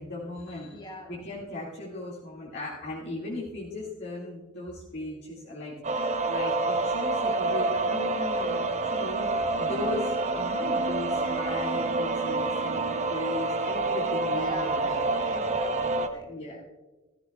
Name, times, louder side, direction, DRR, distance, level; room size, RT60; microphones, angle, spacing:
voice 1, 0.0-0.8 1.1-5.7 6.0-15.4 16.3-16.6, left 2 dB, 55° left, -6 dB, 2.2 m, -37 dB
voice 2, 0.7-1.2 14.3-15.0 15.3-16.5, left 1 dB, 20° left, 1 dB, 1.7 m, -44 dB
sound 1, 5.8-16.1, right 2 dB, 35° right, 0.7 m, -27 dB
17.0 x 13.5 x 2.3 m, 1.2 s
head